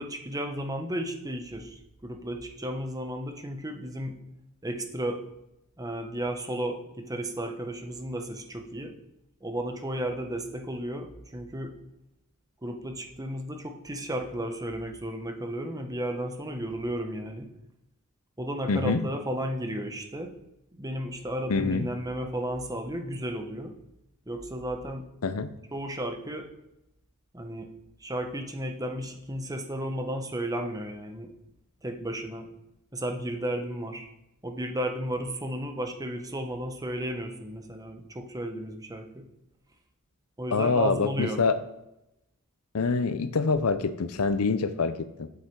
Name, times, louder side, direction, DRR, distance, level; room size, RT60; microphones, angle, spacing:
voice 1, 0.0-4.2 4.6-5.2 5.8-8.9 9.4-11.7 12.6-17.5 18.4-20.3 20.7-23.7 24.3-25.1 25.7-26.5 27.3-27.7 28.0-31.3 31.8-32.5 32.9-34.1 34.4-39.2 40.4-41.4, right 1 dB, 15° right, 5 dB, 1.0 m, -33 dB
voice 2, 18.7-19.1 21.5-21.9 25.2-25.5 40.5-41.6 42.7-45.3, left 4 dB, 85° left, 13 dB, 0.6 m, -25 dB
8.0 x 8.0 x 4.7 m, 0.89 s
head